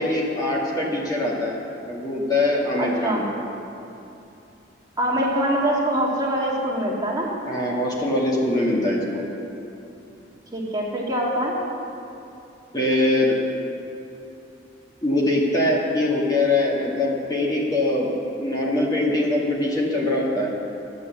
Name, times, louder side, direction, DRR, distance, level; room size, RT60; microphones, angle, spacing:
voice 1, 0.0-1.6 1.9-3.2 7.5-9.2 12.7-13.4 15.0-18.1 18.4-20.5, left 1 dB, 20° left, -4 dB, 1.9 m, -22 dB
voice 2, 2.8-3.2 5.0-7.3 10.5-11.5, right 1 dB, 20° right, -4 dB, 1.8 m, -24 dB
11.5 x 9.2 x 7.3 m, 2.7 s
head